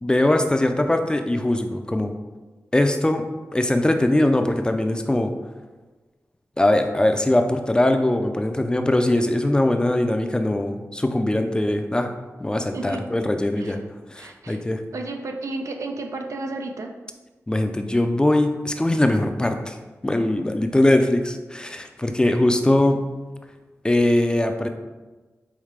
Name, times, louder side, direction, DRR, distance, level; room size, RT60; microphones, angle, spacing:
voice 1, 0.0-2.1 2.7-3.2 3.5-5.3 6.6-12.1 12.4-13.8 14.1-14.8 17.5-19.8 20.0-23.0 23.8-24.7, left 1 dB, 15° left, 6 dB, 0.4 m, -21 dB
voice 2, 12.7-13.1 13.6-13.7 14.2-14.6 14.9-16.9, right 2 dB, 85° right, 4 dB, 0.5 m, -32 dB
4.9 x 3.2 x 3.3 m, 1.2 s
wide cardioid pair, 80°, 5 cm